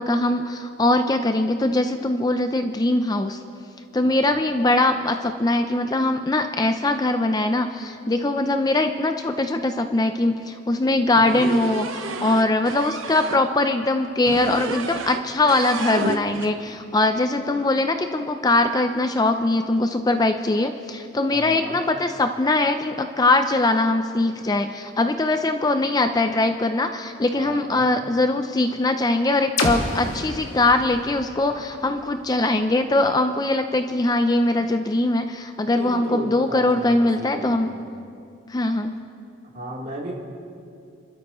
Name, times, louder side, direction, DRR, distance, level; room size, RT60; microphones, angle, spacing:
voice 1, 0.0-3.4 3.9-37.7 38.5-38.9, left 2 dB, 20° left, 7 dB, 0.4 m, -21 dB
voice 2, 4.0-4.4 21.3-21.8 27.3-27.9 35.7-37.7 39.5-40.1, right 1 dB, 45° right, -4 dB, 3.3 m, -35 dB
sound 1, 11.2-13.4 14.3-15.2 15.5-16.5, right 3 dB, 90° right, 1.0 m, -31 dB
sound 2, 29.6-33.4, left 2 dB, 90° left, 1.8 m, -31 dB
30.0 x 13.0 x 3.1 m, 2.5 s
head